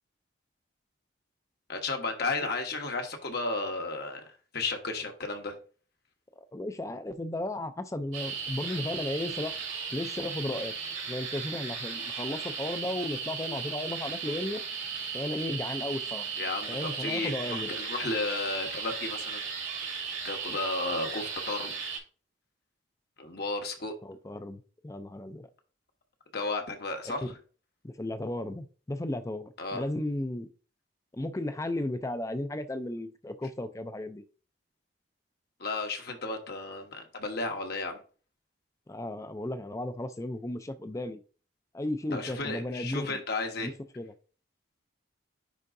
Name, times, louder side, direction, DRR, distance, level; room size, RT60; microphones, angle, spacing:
voice 1, 1.7-5.6 16.4-19.4 20.2-21.8 23.2-24.0 26.3-27.4 29.6-29.8 35.6-38.0 42.1-43.7, left 3 dB, 55° left, 1.1 m, -33 dB
voice 2, 6.4-9.6 9.9-10.7 11.1-14.6 15.1-16.3 16.7-17.7 24.0-25.5 27.8-30.5 31.1-34.2 38.9-41.2 41.7-43.2 43.6-44.1, left 1 dB, 15° left, 0.4 m, -35 dB
sound 1, 8.1-22.0, right 6 dB, 90° right, 2.4 m, -36 dB
9.9 x 3.7 x 2.6 m
head